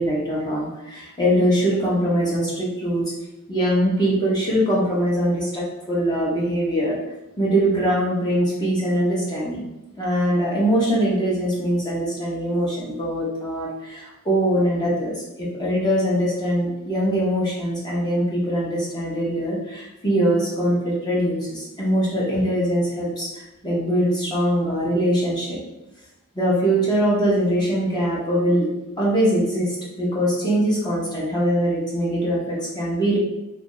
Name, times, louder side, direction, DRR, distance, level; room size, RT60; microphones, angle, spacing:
voice 1, 0.0-3.1 3.5-7.0 7.4-9.6 10.0-25.6 26.3-28.7 29.0-33.2, equal, 20° left, -6 dB, 0.8 m, -22 dB
3.1 x 2.5 x 3.7 m, 0.97 s
head